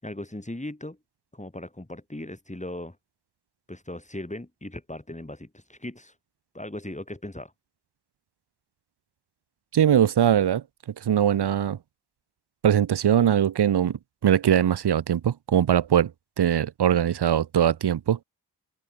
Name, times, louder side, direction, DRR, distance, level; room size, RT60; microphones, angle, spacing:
voice 1, 0.0-1.0 1.3-3.0 3.7-6.1 6.5-7.5, left 1 dB, 15° left, 7.5 m, -38 dB
voice 2, 9.7-10.6 11.0-11.8 12.6-16.1 16.4-18.2, right 9 dB, 70° right, 0.9 m, -21 dB
open air
cardioid pair, 50°, 41 cm